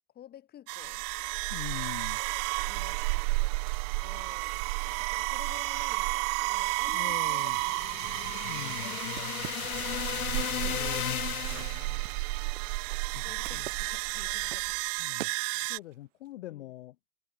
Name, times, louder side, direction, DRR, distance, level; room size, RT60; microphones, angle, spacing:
voice 1, 0.1-1.1 2.2-7.4 7.8-7.9 8.8-9.6 13.2-14.8 16.4-16.6, left 11 dB, 20° left, 2.7 m, -53 dB
sound 1, 0.7-15.8, right 31 dB, 25° right, 0.6 m, -32 dB
voice 2, 1.5-2.2 6.9-7.6 8.5-8.9 10.6-11.1 13.1-13.7 15.0-15.3 15.7-17.0, left 15 dB, 50° left, 1.1 m, -43 dB
sound 2, 1.8-15.9, right 13 dB, 55° right, 1.3 m, -49 dB
sound 3, 7.1-12.0, left 10 dB, 75° left, 0.9 m, -35 dB
hypercardioid pair, 115°, 43 cm